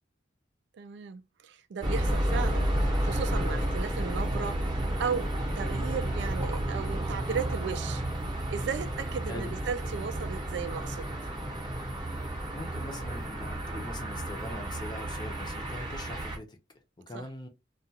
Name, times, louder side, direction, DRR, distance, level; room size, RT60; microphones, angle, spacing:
voice 1, 0.7-2.7 3.0-8.0 8.5-11.1 17.1-17.3, right 6 dB, 65° right, 0.3 m, -35 dB
sound 1, 1.8-16.4, right 1 dB, 25° right, 0.8 m, -31 dB
voice 2, 12.5-16.6 17.1-17.5, left 1 dB, 25° left, 0.6 m, -42 dB
2.3 x 2.3 x 2.7 m
head